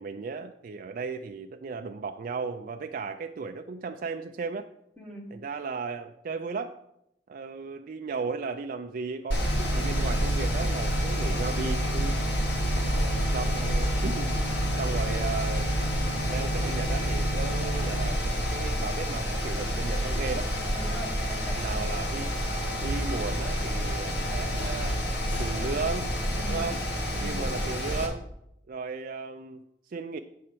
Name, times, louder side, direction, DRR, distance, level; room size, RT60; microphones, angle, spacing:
voice 1, 0.0-4.7 5.3-6.8 7.3-12.2 12.8-14.3 14.8-15.7 16.3-20.5 21.5-22.3 22.8-25.1 25.4-26.1 26.5-26.8 27.2-28.3 28.7-30.2, right 4 dB, 50° right, 5 dB, 0.4 m, -35 dB
voice 2, 5.0-5.3 20.7-21.8 26.3-26.7 27.1-27.5, right 1 dB, 10° left, -3 dB, 1.3 m, -41 dB
Mechanical fan, 9.3-28.1, equal, 70° left, 1.4 m, -29 dB
sound 1, 9.4-18.1, right 1 dB, 50° left, 1.0 m, -32 dB
8.6 x 4.4 x 6.8 m, 0.82 s
head